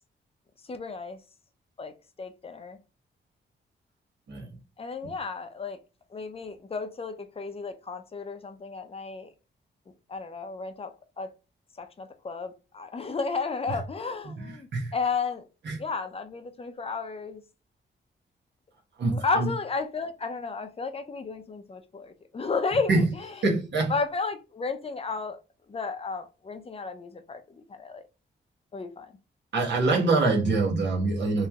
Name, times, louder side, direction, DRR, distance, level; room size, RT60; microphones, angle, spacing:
voice 1, 0.7-1.2 1.8-1.9 2.2-2.8 4.8-5.8 6.1-9.3 10.1-11.3 11.8-15.4 15.8-17.4 19.1-23.0 23.9-25.4 25.7-27.4 27.7-28.0 28.7-29.1, left 4 dB, 30° left, 0.6 m, -33 dB
voice 2, 14.2-14.9 15.6-15.8 19.0-19.5 22.9-23.0 23.4-23.9 29.5-31.5, right 3 dB, 65° right, 1.3 m, -25 dB
3.1 x 2.9 x 3.5 m
wide cardioid pair, 120°, 20 cm